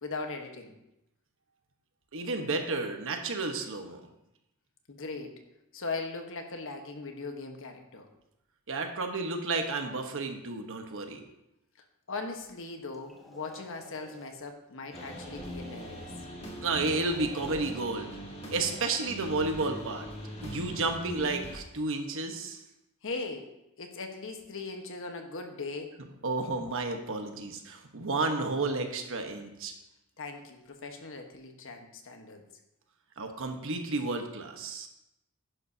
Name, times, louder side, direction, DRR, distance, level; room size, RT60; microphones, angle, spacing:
voice 1, 0.0-0.7 4.9-5.4 5.7-8.1 12.1-16.1 23.0-23.5 23.8-25.9 30.2-32.4, left 3 dB, 65° left, 4 dB, 1.3 m, -39 dB
voice 2, 2.1-4.0 8.7-11.2 16.6-18.2 18.5-20.1 20.4-22.6 26.2-29.7 33.2-34.9, right 3 dB, 65° right, 5 dB, 1.2 m, -32 dB
sound 1, 12.9-14.4 14.9-16.2 16.8-18.0 18.5-19.1, equal, ahead, 1.4 m, -51 dB
sound 2, 14.9-21.6, equal, 30° left, 1.9 m, -42 dB
11.0 x 10.5 x 2.8 m, 0.88 s
head